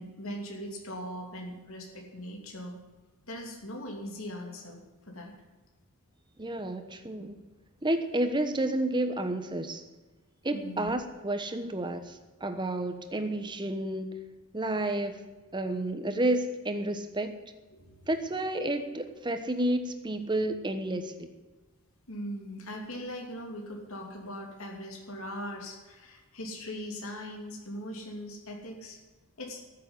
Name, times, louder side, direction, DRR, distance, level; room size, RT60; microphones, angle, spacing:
voice 1, 0.0-2.7 3.3-5.3 10.5-10.9 17.7-18.0 22.1-29.0 29.4-29.6, equal, 65° left, 1 dB, 2.9 m, -40 dB
voice 2, 6.4-7.4 7.8-9.8 10.4-14.1 14.5-15.2 15.5-17.3 18.1-21.3, right 1 dB, 20° right, 8 dB, 1.2 m, -30 dB
14.0 x 7.5 x 9.9 m, 1.3 s
head